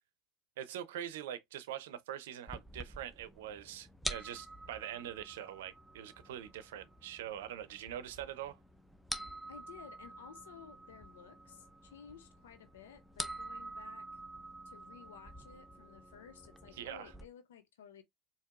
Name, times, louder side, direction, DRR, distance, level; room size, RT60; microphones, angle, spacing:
voice 1, 0.6-8.6 16.8-17.1, right 11 dB, 75° right, 0.6 m, -43 dB
sound 1, 2.5-17.2, right 1 dB, ahead, 0.7 m, -47 dB
voice 2, 9.5-14.1 14.6-18.0, left 8 dB, 80° left, 0.6 m, -55 dB
4.5 x 2.8 x 2.4 m
hypercardioid pair, 75°, 0 cm